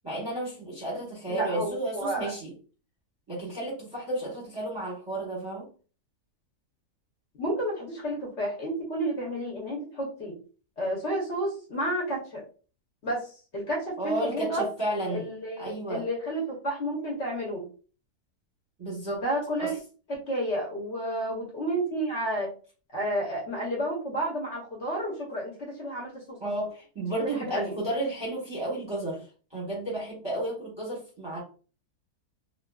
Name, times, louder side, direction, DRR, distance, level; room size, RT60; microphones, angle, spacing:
voice 1, 0.0-2.5 3.3-5.7 14.0-15.3 15.6-16.1 18.8-19.2 19.5-19.7 26.4-31.4, right 1 dB, 20° right, -5 dB, 0.9 m, -32 dB
voice 2, 1.3-2.3 7.4-10.3 10.8-12.4 13.0-14.7 15.1-17.7 19.2-19.7 20.1-22.5 22.9-26.4 27.2-27.7, right 1 dB, 55° left, -3 dB, 1.0 m, -31 dB
2.8 x 2.6 x 2.2 m, 0.37 s
omnidirectional pair, 1.6 m